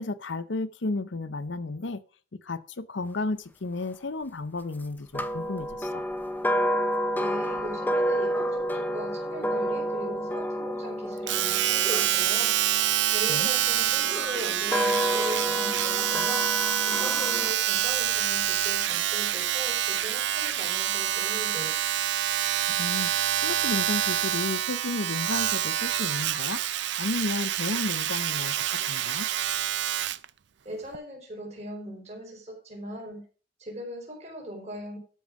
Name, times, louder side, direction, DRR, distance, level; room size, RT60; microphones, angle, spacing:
voice 1, 0.0-2.0 2.4-6.0 13.3-13.5 22.8-23.1 23.4-26.6 27.0-29.3, left 3 dB, 65° left, 14 dB, 0.7 m, -32 dB
sound 1, 5.1-13.3 14.0-17.5, equal, 10° left, 0.6 m, -29 dB
voice 2, 7.1-12.5 13.1-16.4 16.9-21.7 30.6-33.2 33.6-35.0, right 1 dB, 35° right, 1 dB, 4.5 m, -39 dB
Domestic sounds home sounds, 11.3-30.3 30.9-31.0, right 11 dB, 60° right, 0.5 m, -27 dB
12.5 x 5.5 x 6.0 m, 0.39 s
head